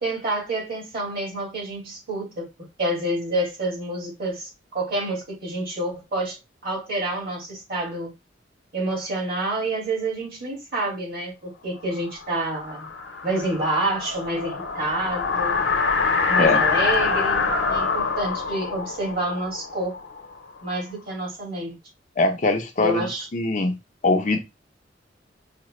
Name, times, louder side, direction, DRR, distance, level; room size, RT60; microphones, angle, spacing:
voice 1, 0.0-2.5 2.8-6.4 6.6-8.1 8.7-12.9 13.2-15.6 16.3-20.0 20.6-21.8 22.8-23.3, right 1 dB, 55° right, 2.2 m, -28 dB
sound 1, 12.0-20.7, left 5 dB, 80° left, 0.9 m, -25 dB
voice 2, 22.2-23.8 24.0-24.4, left 2 dB, 40° left, 0.6 m, -22 dB
4.9 x 2.2 x 3.1 m
head